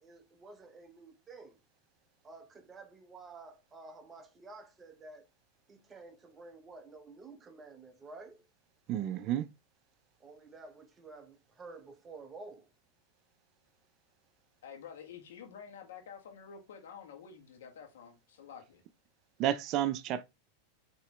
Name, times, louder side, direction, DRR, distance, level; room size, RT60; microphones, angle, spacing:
voice 1, 0.0-1.5 2.2-5.3 5.7-8.5 10.2-12.7, right 3 dB, 20° right, 0.8 m, -51 dB
voice 2, 8.9-9.5 19.4-20.2, right 12 dB, 45° right, 0.4 m, -31 dB
voice 3, 14.6-18.8, left 7 dB, 80° left, 1.5 m, -49 dB
5.5 x 3.1 x 3.1 m
hypercardioid pair, 115°, 0 cm